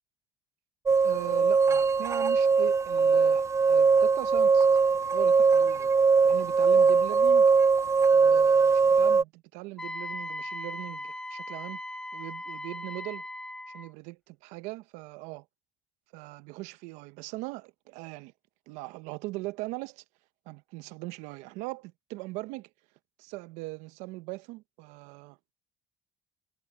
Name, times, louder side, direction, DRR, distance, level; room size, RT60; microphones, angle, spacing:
sound 1, 0.9-9.2, right 5 dB, 25° right, 0.5 m, -21 dB
voice 1, 1.0-4.7 5.1-5.9 6.2-7.5 8.1-11.8 12.1-13.2 13.7-15.5 16.1-18.3 18.7-20.0 20.5-22.7 23.2-25.4, right 21 dB, 80° right, 1.1 m, -40 dB
Wind instrument woodwind instrument, 9.8-13.9, left 1 dB, 5° left, 1.5 m, -38 dB
supercardioid pair, 70°, 12 cm